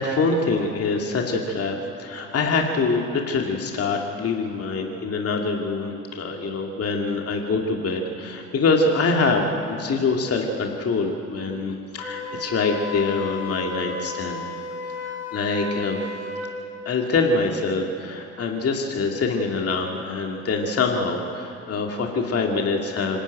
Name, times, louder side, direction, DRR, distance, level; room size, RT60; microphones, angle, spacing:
voice 1, 0.0-14.4 15.0-16.0 16.9-23.2, left 3 dB, 40° left, 1 dB, 2.4 m, -24 dB
Wind instrument woodwind instrument, 12.0-16.5, left 4 dB, 70° left, 6.9 m, -33 dB
25.5 x 11.5 x 9.1 m, 2.8 s
hypercardioid pair, 65°, 37 cm